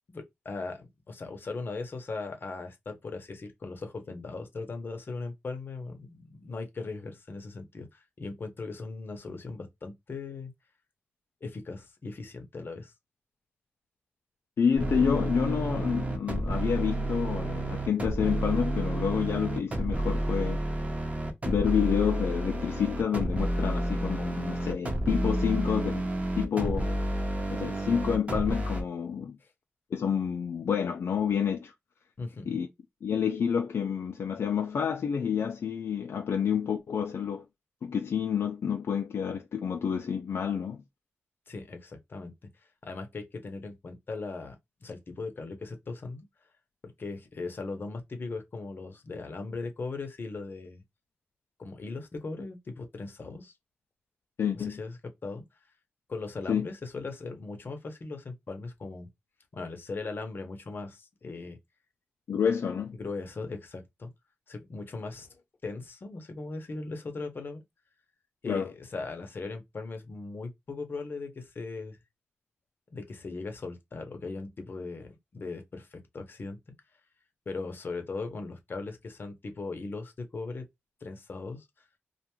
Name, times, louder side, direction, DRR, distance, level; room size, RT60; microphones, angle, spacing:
voice 1, 0.1-10.5 11.4-12.9 29.4-29.5 32.2-32.6 41.5-42.3 42.8-44.6 44.8-46.3 47.0-50.8 51.6-53.5 54.5-55.4 56.1-59.1 59.5-61.6 63.0-64.1 64.5-65.3 65.6-67.6 68.4-72.0 72.9-76.6 77.5-80.6 81.0-81.7, left 3 dB, 55° left, 0.7 m, -39 dB
voice 2, 14.6-20.6 21.5-26.1 26.4-27.0 27.5-29.4 29.9-31.7 32.5-32.7 33.0-37.4 37.8-40.8 54.4-54.8 56.5-56.7 62.3-62.9 68.5-68.7, left 7 dB, 75° left, 0.3 m, -29 dB
sound 1, 14.7-28.8, right 1 dB, 30° right, 0.8 m, -30 dB
2.5 x 2.2 x 2.9 m
wide cardioid pair, 85°, 4 cm